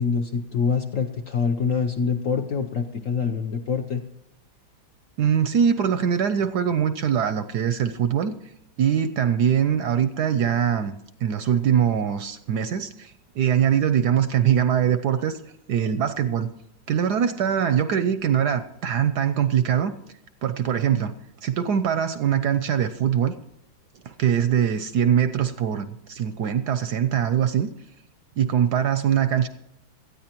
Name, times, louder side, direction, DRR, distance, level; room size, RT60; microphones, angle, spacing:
voice 1, 0.0-4.0, left 6 dB, 60° left, 5 dB, 0.8 m, -25 dB
voice 2, 5.2-8.3 8.8-10.9 11.2-15.4 15.7-16.5 16.9-19.9 20.4-21.2 21.4-23.3 24.0-27.7 28.4-29.5, right 8 dB, 70° right, 12 dB, 1.0 m, -22 dB
18.5 x 13.0 x 3.0 m, 0.83 s
omnidirectional pair, 2.2 m